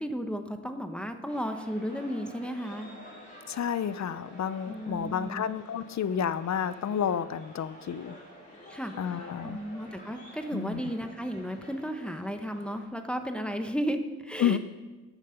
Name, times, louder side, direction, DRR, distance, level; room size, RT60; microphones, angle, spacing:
voice 1, 0.0-2.9 4.7-5.4 8.7-14.6, equal, 5° left, 6 dB, 0.9 m, -34 dB
sound 1, 1.3-12.9, equal, 25° left, 5.0 m, -50 dB
voice 2, 3.5-8.1 9.0-9.6 10.5-10.8 14.4-14.6, left 8 dB, 60° left, 15 dB, 0.5 m, -30 dB
15.5 x 8.9 x 5.7 m, 1.3 s
wide cardioid pair, 135°, 32 cm